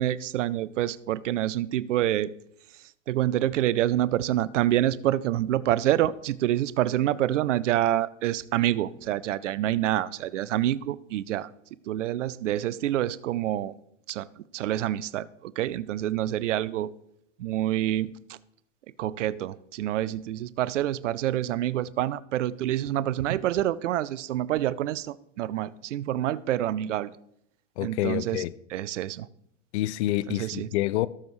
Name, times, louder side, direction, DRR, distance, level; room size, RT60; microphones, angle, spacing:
voice 1, 0.0-2.3 3.1-11.5 11.9-13.7 14.1-14.3 14.5-16.9 17.4-18.1 19.0-27.1 27.8-28.4 28.7-29.3 30.4-30.7, right 13 dB, 80° right, 0.6 m, -27 dB
voice 2, 27.8-28.5 29.7-31.1, left 15 dB, 65° left, 0.5 m, -27 dB
17.5 x 7.0 x 3.2 m
hypercardioid pair, 105°, 36 cm